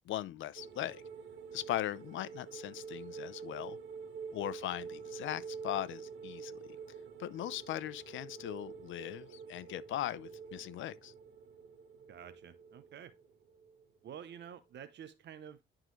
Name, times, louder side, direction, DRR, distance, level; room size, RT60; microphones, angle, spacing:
voice 1, 0.1-1.0 1.5-3.8 4.3-6.8 7.2-11.1, left 13 dB, 75° left, 0.6 m, -39 dB
sound 1, 0.5-14.0 14.3-14.5, right 6 dB, 80° right, 1.3 m, -48 dB
voice 2, 12.1-13.1 14.0-15.6, right 8 dB, 60° right, 0.7 m, -49 dB
11.5 x 3.8 x 3.1 m
cardioid pair, 90°, 20 cm